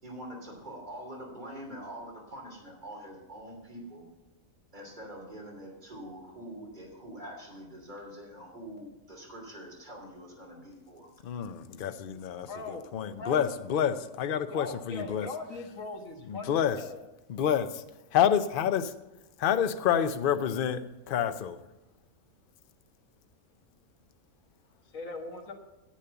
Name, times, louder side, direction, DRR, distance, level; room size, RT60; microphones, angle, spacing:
voice 1, 0.0-4.1 4.7-11.1, right 1 dB, 30° right, -1 dB, 3.2 m, -44 dB
voice 2, 11.2-15.3 16.3-16.8 17.3-17.8 18.1-18.9 19.4-21.6, left 9 dB, 50° left, 10 dB, 0.7 m, -28 dB
voice 3, 12.4-12.9 13.2-13.4 14.5-17.0 24.8-25.5, left 3 dB, 65° left, 3 dB, 1.9 m, -40 dB
10.5 x 8.3 x 7.0 m, 1.0 s
omnidirectional pair, 1.5 m